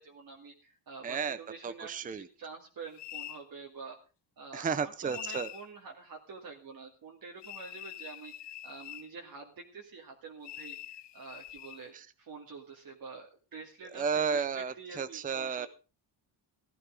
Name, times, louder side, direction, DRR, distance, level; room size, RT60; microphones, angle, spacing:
voice 1, 0.0-4.0 4.4-15.7, right 4 dB, 45° right, -1 dB, 2.3 m, -47 dB
voice 2, 1.0-1.4 1.6-2.2 4.5-5.5 13.9-15.7, right 6 dB, 20° right, 13 dB, 0.6 m, -32 dB
sound 1, 3.0-3.4 5.1-5.7 7.4-9.1 10.4-11.8, left 13 dB, 60° left, 0.7 m, -44 dB
15.5 x 13.0 x 3.8 m, 0.34 s
cardioid pair, 145°, 47 cm